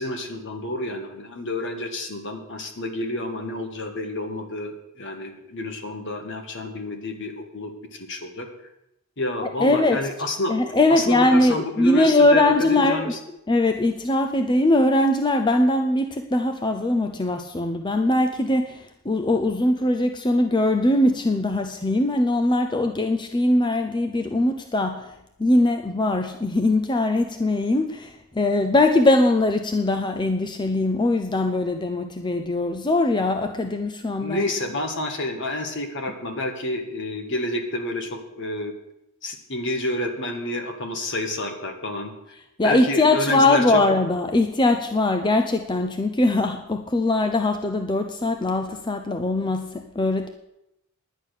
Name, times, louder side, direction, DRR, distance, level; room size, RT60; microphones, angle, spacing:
voice 1, 0.0-8.5 9.2-10.5 10.9-12.4 12.7-13.2 34.2-38.7 39.2-42.1 42.6-43.8, left 1 dB, 55° left, 5 dB, 1.7 m, -29 dB
voice 2, 9.6-10.0 10.5-13.2 13.5-25.1 25.4-34.5 42.6-50.3, left 2 dB, 20° left, 6 dB, 0.6 m, -21 dB
10.0 x 10.0 x 6.5 m, 0.84 s
head